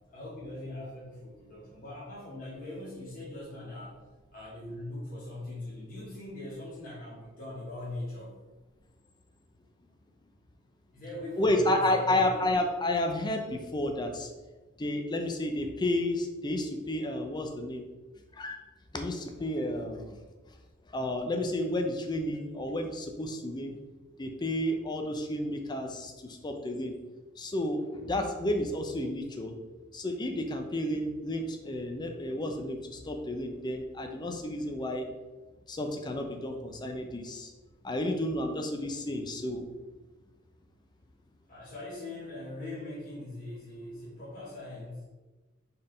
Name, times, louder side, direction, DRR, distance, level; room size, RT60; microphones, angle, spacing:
voice 1, 0.1-4.0 4.3-8.3 10.9-12.4 41.5-45.0, left 1 dB, 40° left, -8 dB, 1.2 m, -41 dB
voice 2, 11.4-14.3 14.8-17.9 18.3-18.6 18.9-20.2 20.9-23.8 24.2-26.9 27.4-29.5 29.9-35.1 35.7-37.5 37.8-39.7, left 1 dB, 20° left, 4 dB, 0.5 m, -31 dB
4.4 x 3.6 x 3.3 m, 1.2 s
head